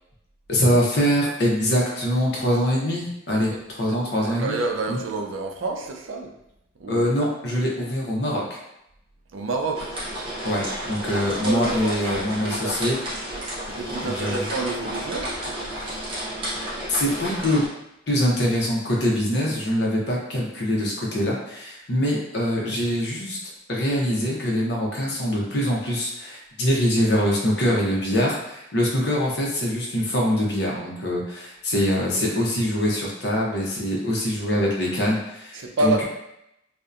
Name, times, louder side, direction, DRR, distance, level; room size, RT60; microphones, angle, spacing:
voice 1, 0.5-4.6 4.9-5.0 6.9-8.6 10.4-13.0 14.0-14.4 16.9-17.6 18.1-23.4 23.7-36.0, equal, 60° left, -3 dB, 0.6 m, -24 dB
voice 2, 4.2-6.3 6.8-7.1 9.3-9.9 11.0-11.1 11.4-13.0 13.7-15.4 35.5-36.0, right 2 dB, 85° right, 2 dB, 0.4 m, -28 dB
sound 1, 9.7-17.7, equal, 25° right, 0.7 m, -32 dB
2.6 x 2.1 x 2.4 m, 0.83 s
head